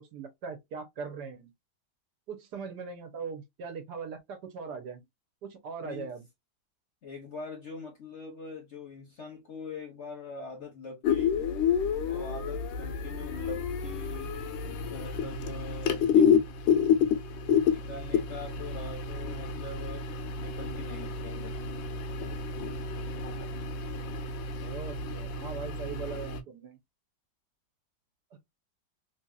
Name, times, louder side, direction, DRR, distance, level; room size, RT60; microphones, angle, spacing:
voice 1, 0.0-1.5 2.3-5.0 5.4-6.2 24.6-26.8, right 5 dB, 70° right, 1.2 m, -40 dB
voice 2, 7.0-11.4 12.1-14.3 14.6-16.3 17.7-20.1 20.4-21.6, left 4 dB, 50° left, 0.9 m, -43 dB
sound 1, 11.0-26.4, left 6 dB, 85° left, 1.3 m, -29 dB
3.2 x 2.7 x 2.3 m
omnidirectional pair, 2.0 m